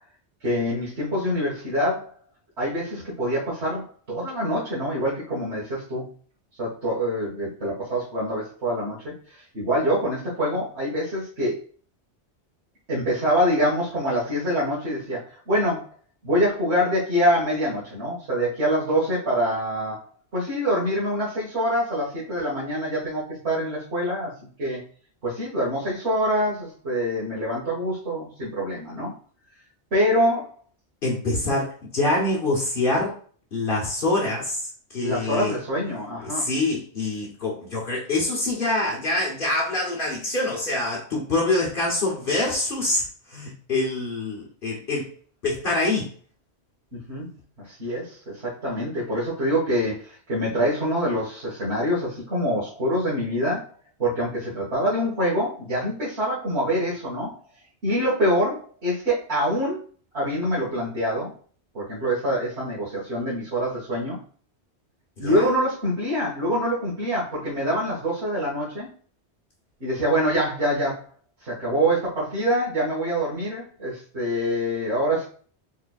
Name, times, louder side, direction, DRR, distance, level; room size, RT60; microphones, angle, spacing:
voice 1, 0.4-2.1 2.6-6.1 6.6-11.6 12.9-15.8 16.2-20.0 20.3-24.3 24.6-24.8 25.2-29.1 29.9-30.5 35.0-36.5 46.9-47.3 47.6-53.7 54.0-57.3 57.8-59.8 60.1-61.3 61.7-64.2 65.2-68.9 69.8-71.0 71.4-75.2, equal, 70° right, -8 dB, 2.0 m, -25 dB
voice 2, 31.0-33.1 33.5-35.5 36.2-43.0 43.3-45.1 45.4-46.1 65.2-65.4, left 2 dB, 55° left, -3 dB, 1.3 m, -25 dB
4.5 x 4.2 x 2.4 m, 0.43 s
omnidirectional pair, 1.1 m